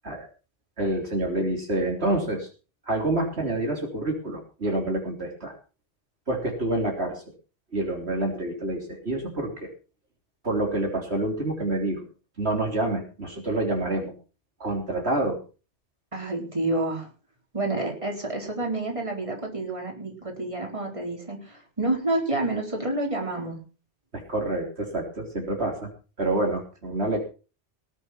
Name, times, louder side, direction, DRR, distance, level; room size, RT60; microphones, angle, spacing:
voice 1, 0.8-2.5 2.9-5.5 6.3-7.2 7.7-9.7 10.4-12.1 12.4-14.1 14.6-15.4 24.1-25.9 26.2-27.2, right 2 dB, 65° right, 1 dB, 3.9 m, -27 dB
voice 2, 16.1-17.1 17.5-23.6, right 2 dB, 30° right, 1 dB, 4.3 m, -29 dB
19.5 x 8.2 x 5.8 m, 0.36 s
omnidirectional pair, 1.2 m